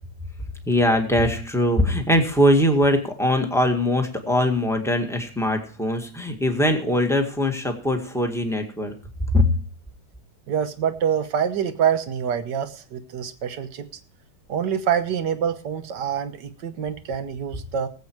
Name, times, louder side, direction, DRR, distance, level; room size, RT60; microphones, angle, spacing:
voice 1, 0.7-8.9 9.3-9.5, left 1 dB, ahead, 3 dB, 1.7 m, -21 dB
voice 2, 10.5-13.9 14.5-17.9, right 8 dB, 70° right, 10 dB, 1.7 m, -26 dB
18.5 x 8.2 x 4.6 m, 0.40 s
omnidirectional pair, 1.9 m